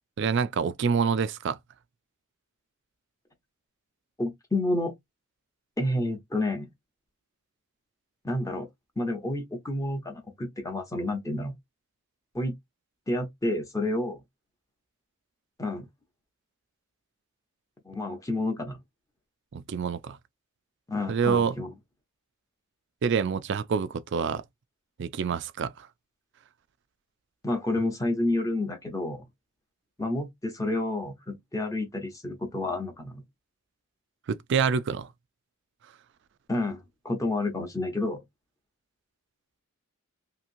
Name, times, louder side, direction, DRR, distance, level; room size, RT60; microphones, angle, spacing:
voice 1, 0.2-1.6 19.5-20.2 21.1-21.6 23.0-24.4 25.0-25.9 34.3-35.1, right 6 dB, 55° right, 0.3 m, -27 dB
voice 2, 4.2-4.9 5.8-6.7 8.2-8.7 9.0-11.5 12.3-12.5 13.1-14.2 15.6-15.9 17.9-18.8 20.9-21.7 27.4-29.3 30.0-33.2 36.5-38.2, left 2 dB, 15° left, 0.6 m, -29 dB
2.9 x 2.7 x 2.6 m
head